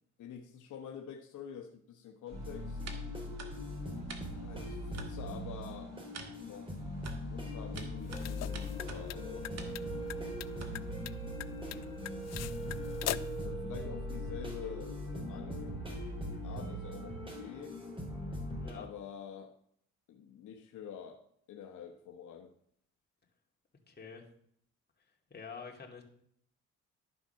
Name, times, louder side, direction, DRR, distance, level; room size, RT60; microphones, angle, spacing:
voice 1, 0.2-2.8 4.3-5.9 6.3-6.7 7.3-9.8 13.4-15.8 16.4-17.8 18.7-19.5 20.1-21.2 21.5-22.5, left 8 dB, 75° left, 3 dB, 1.2 m, -47 dB
sound 1, 2.3-18.7, equal, 15° right, 3.4 m, -40 dB
sound 2, 2.3-11.1, right 5 dB, 60° right, 1.7 m, -51 dB
sound 3, 8.0-13.4, left 14 dB, 60° left, 0.5 m, -42 dB
voice 2, 11.6-11.9 18.6-18.9 23.9-24.3 25.3-26.0, left 5 dB, 35° left, 1 dB, 2.5 m, -47 dB
12.0 x 5.7 x 5.7 m, 0.66 s
cardioid pair, 90°, 30 cm